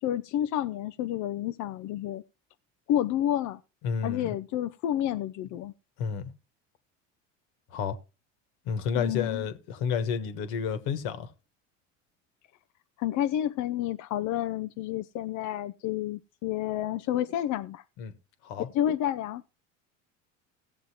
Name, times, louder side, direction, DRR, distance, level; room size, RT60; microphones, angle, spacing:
voice 1, 0.0-2.2 2.9-3.6 4.0-5.7 9.0-9.5 13.0-17.8 18.7-19.4, left 11 dB, 50° left, 0.5 m, -30 dB
voice 2, 3.8-4.3 6.0-6.3 7.7-8.0 8.6-11.3 18.0-18.1 18.4-18.7, left 6 dB, 65° left, 1.4 m, -30 dB
17.5 x 7.2 x 2.9 m
hypercardioid pair, 75°, 39 cm